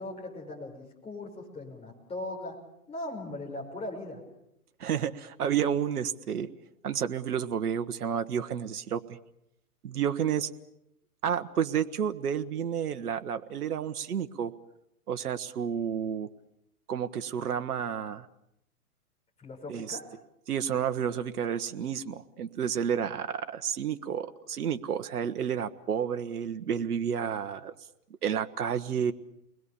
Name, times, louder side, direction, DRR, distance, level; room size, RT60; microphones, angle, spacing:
voice 1, 0.0-2.6 2.9-4.2 19.4-20.0, left 2 dB, 15° left, -1 dB, 5.7 m, -39 dB
voice 2, 4.8-6.5 6.8-9.2 9.8-10.5 11.2-14.5 15.1-16.3 16.9-18.3 19.7-20.0 20.5-27.7 28.2-29.1, right 8 dB, 75° right, 9 dB, 1.4 m, -30 dB
30.0 x 21.0 x 7.0 m, 0.81 s
hypercardioid pair, 140°, 45 cm